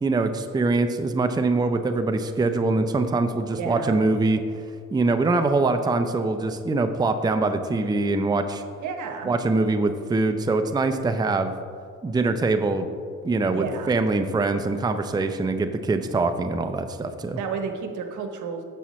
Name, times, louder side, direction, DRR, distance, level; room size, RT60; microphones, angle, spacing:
voice 1, 0.0-4.4 4.9-8.6 9.3-11.5 12.0-12.9 13.2-17.4, right 3 dB, 15° right, 8 dB, 0.5 m, -23 dB
voice 2, 3.5-4.1 8.8-9.3 13.5-14.0 17.4-18.6, right 5 dB, 80° right, 5 dB, 1.0 m, -32 dB
9.9 x 7.4 x 3.1 m, 2.2 s
cardioid pair, 90°, 30 cm